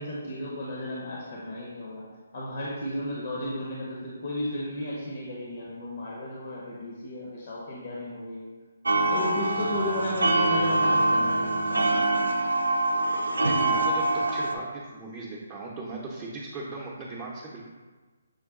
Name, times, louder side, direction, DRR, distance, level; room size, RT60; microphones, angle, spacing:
voice 1, 0.0-8.5 9.1-12.3, left 1 dB, 50° left, -5 dB, 0.8 m, -34 dB
sound 1, 8.9-14.5, right 2 dB, 85° right, 0.4 m, -24 dB
voice 2, 13.4-17.6, right 3 dB, 20° right, -5 dB, 0.6 m, -38 dB
6.5 x 2.2 x 3.7 m, 1.3 s
hypercardioid pair, 150°, 0 cm